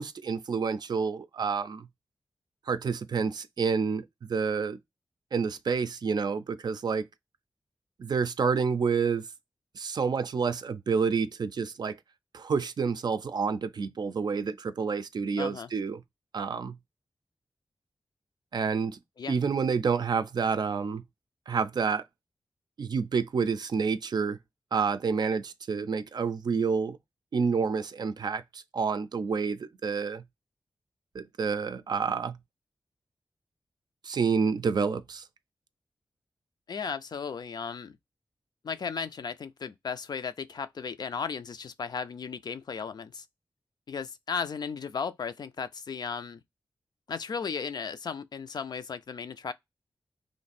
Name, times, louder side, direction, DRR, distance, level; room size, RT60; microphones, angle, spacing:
voice 1, 0.0-1.9 2.7-4.8 5.3-7.1 8.0-9.3 9.7-12.0 12.3-16.0 16.3-16.8 18.5-19.0 19.3-21.0 21.5-22.0 22.8-24.4 24.7-27.0 27.3-30.2 31.1-32.4 34.0-35.2, right 5 dB, 65° right, 0.4 m, -29 dB
voice 2, 15.4-15.7 19.2-19.4 36.7-38.0 38.6-43.3 43.9-46.4 47.1-49.5, left 6 dB, 65° left, 0.4 m, -35 dB
3.1 x 2.6 x 4.0 m
wide cardioid pair, 80°, 8 cm